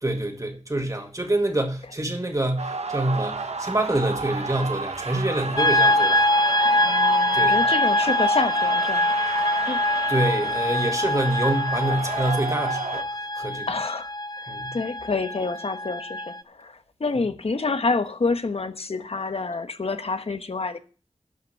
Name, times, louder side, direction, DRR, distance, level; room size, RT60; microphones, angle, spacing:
voice 1, 0.0-6.2 7.3-7.5 10.1-13.7 14.5-14.7, right 1 dB, 30° right, 2.0 m, -26 dB
sound 1, 2.6-13.0, right 4 dB, 75° right, 1.0 m, -32 dB
sound 2, 5.6-16.4, left 1 dB, 40° left, 0.5 m, -24 dB
voice 2, 6.6-9.8 13.7-14.1 14.4-20.8, left 3 dB, 65° left, 1.1 m, -28 dB
12.0 x 5.3 x 7.6 m
wide cardioid pair, 75°, 11 cm